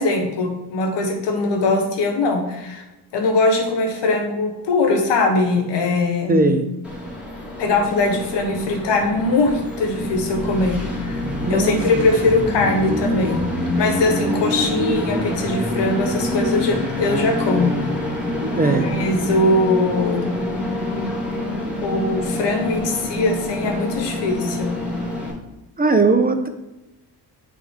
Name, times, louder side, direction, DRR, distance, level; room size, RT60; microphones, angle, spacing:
voice 1, 0.0-2.8 3.1-6.5 7.6-11.2 11.5-13.5 13.8-17.7 18.6-20.4 21.8-24.8, left 2 dB, 80° left, 3 dB, 1.1 m, -21 dB
voice 2, 6.3-6.6 11.5-11.8 18.6-18.9 25.8-26.5, right 3 dB, 20° right, 6 dB, 0.6 m, -18 dB
Train, 6.8-25.3, left 1 dB, 5° right, 2.1 m, -26 dB
8.2 x 3.5 x 3.6 m, 1.0 s
cardioid pair, 65°, 42 cm